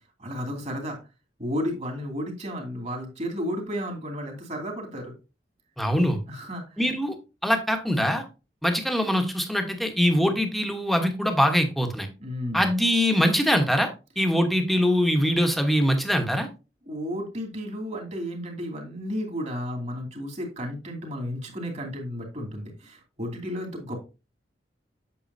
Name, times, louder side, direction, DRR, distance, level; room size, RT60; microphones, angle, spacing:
voice 1, 0.2-1.0 1.4-5.1 6.3-6.8 12.2-12.6 16.9-24.0, equal, 40° right, 2 dB, 2.6 m, -33 dB
voice 2, 5.8-6.2 6.8-7.1 7.4-8.2 8.6-12.1 12.5-13.9 14.2-16.5, equal, ahead, 5 dB, 1.2 m, -23 dB
8.5 x 7.1 x 2.7 m, 0.30 s
head